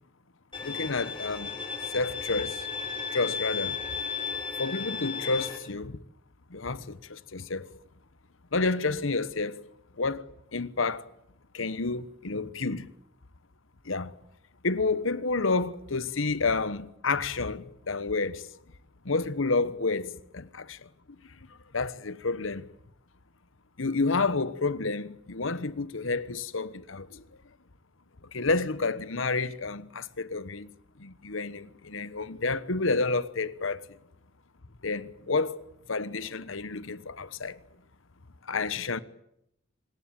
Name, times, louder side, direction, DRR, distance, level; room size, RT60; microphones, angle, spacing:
Bowed string instrument, 0.5-5.6, left 6 dB, 25° left, 5.5 m, -34 dB
voice 1, 0.6-1.5 1.9-2.7 3.1-4.1 4.6-6.0 6.5-7.7 8.5-9.6 10.0-10.2 10.5-11.1 11.5-12.9 13.8-14.1 14.6-18.5 19.0-20.9 21.7-22.7 23.8-27.2 28.3-30.7 31.0-33.9 34.8-35.6 35.9-37.6 38.5-39.0, left 3 dB, 70° left, 1.2 m, -30 dB
26.0 x 21.0 x 8.9 m
head